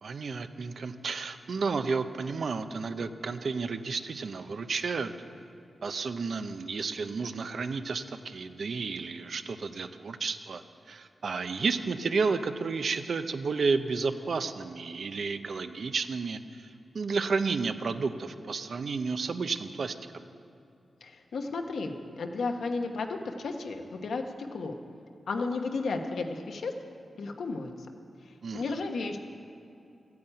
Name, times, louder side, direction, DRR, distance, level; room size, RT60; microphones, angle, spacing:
voice 1, 0.0-5.1 5.8-16.7 16.9-20.2 28.4-28.7, right 4 dB, 60° right, 9 dB, 0.7 m, -32 dB
voice 2, 21.0-24.2 24.5-24.7 25.3-26.7 27.1-27.9 28.5-29.2, left 3 dB, 85° left, 4 dB, 1.2 m, -33 dB
14.0 x 9.5 x 8.9 m, 2.7 s
wide cardioid pair, 140°, 0 cm